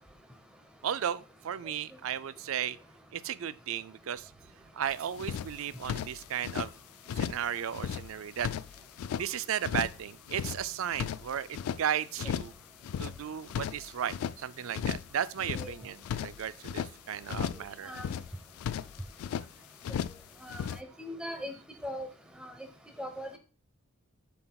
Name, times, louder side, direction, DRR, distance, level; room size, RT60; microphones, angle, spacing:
voice 1, 0.8-2.8 3.1-4.3 4.7-6.7 7.2-8.5 9.1-12.5 13.0-17.9, right 9 dB, 70° right, 0.4 m, -35 dB
sound 1, 4.9-5.0 5.2-6.7 7.1-7.5 7.7-9.3 9.6-10.0 10.3-11.8 12.2-12.6 12.8-14.4 14.7-15.1 15.4-16.9 17.3-17.7 17.9-19.5 19.8-20.2 20.5-20.8, left 8 dB, 80° left, 0.3 m, -35 dB
voice 2, 21.0-21.5 21.8-22.1 22.4-22.5 23.0-23.4, equal, 5° right, 0.9 m, -38 dB
7.6 x 6.0 x 2.3 m
head